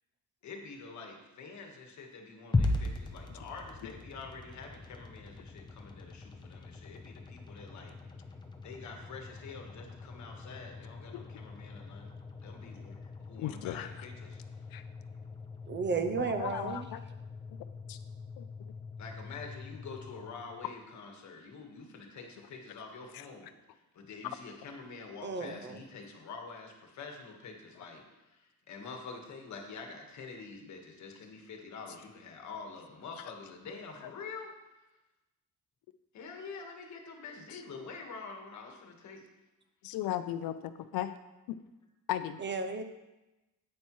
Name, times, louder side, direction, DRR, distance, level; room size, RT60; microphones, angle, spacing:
voice 1, 0.4-8.2 8.6-12.1 12.4-14.4 19.0-34.5 36.1-39.3, left 4 dB, 55° left, 3 dB, 1.4 m, -47 dB
sound 1, 2.5-20.8, left 3 dB, 15° left, 0.6 m, -40 dB
voice 2, 13.4-14.0 14.7-14.8 16.2-17.0 17.9-18.0 18.4-18.7 23.1-23.2 33.2-33.3 34.0-34.1 37.5-37.6 39.8-41.1 42.1-42.4, left 12 dB, 85° left, 11 dB, 0.5 m, -37 dB
voice 3, 15.7-16.8 25.2-25.8 42.4-42.8, right 4 dB, 35° right, 8 dB, 0.5 m, -33 dB
9.7 x 8.5 x 3.1 m, 1.0 s
cardioid pair, 175°, 35 cm